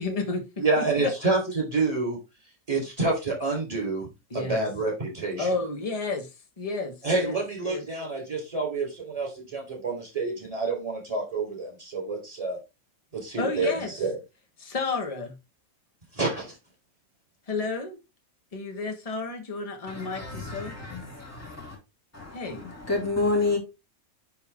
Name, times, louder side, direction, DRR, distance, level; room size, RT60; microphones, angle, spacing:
voice 1, 0.0-1.1 4.3-4.6 5.4-6.3 6.6-7.9 13.4-13.9 14.6-15.4 17.5-18.0 18.5-20.7 22.3-22.7, left 3 dB, 25° left, 1.3 m, -31 dB
voice 2, 0.6-2.2 2.7-4.1 4.3-5.5 7.0-12.6 13.1-14.2 16.1-16.5, right 3 dB, 25° right, 4.0 m, -28 dB
voice 3, 19.9-21.8 22.1-23.6, left 3 dB, 10° left, 2.5 m, -29 dB
9.7 x 3.7 x 3.6 m
omnidirectional pair, 1.5 m